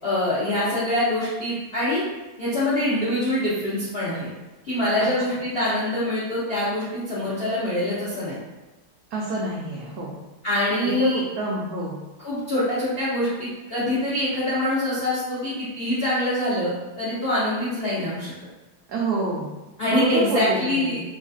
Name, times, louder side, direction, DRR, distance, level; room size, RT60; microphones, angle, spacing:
voice 1, 0.0-2.0 2.4-4.3 4.6-8.4 10.4-11.2 12.2-18.3 19.8-21.0, left 1 dB, 85° left, -9 dB, 0.5 m, -24 dB
voice 2, 9.1-10.2 10.8-12.0 18.9-19.5 19.9-21.0, right 3 dB, 75° right, -4 dB, 0.9 m, -27 dB
3.7 x 2.6 x 2.3 m, 1.1 s
omnidirectional pair, 2.2 m